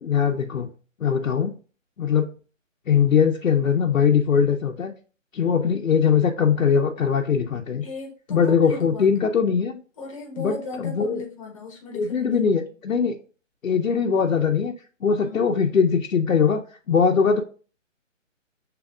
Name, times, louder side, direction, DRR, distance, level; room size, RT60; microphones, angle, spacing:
voice 1, 0.0-0.7 1.0-1.6 2.0-2.3 2.9-4.9 5.3-7.8 8.3-9.8 10.4-11.2 11.9-13.2 13.6-14.7 15.0-17.4, left 6 dB, 85° left, 1 dB, 0.8 m, -21 dB
voice 2, 7.8-9.2 10.0-12.6 15.1-15.5, left 3 dB, 25° left, 1 dB, 1.1 m, -37 dB
5.9 x 3.4 x 2.4 m, 0.38 s
hypercardioid pair, 155°, 39 cm